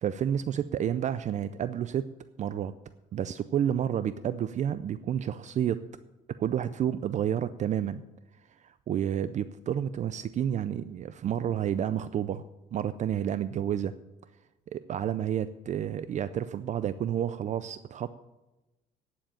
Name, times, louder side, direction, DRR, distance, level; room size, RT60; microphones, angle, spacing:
voice 1, 0.0-2.1 2.4-2.7 3.1-5.8 6.4-8.0 8.6-13.9 14.7-18.1, right 9 dB, 45° right, 14 dB, 0.4 m, -30 dB
10.0 x 7.2 x 8.9 m, 1.1 s
cardioid pair, 110°, 17 cm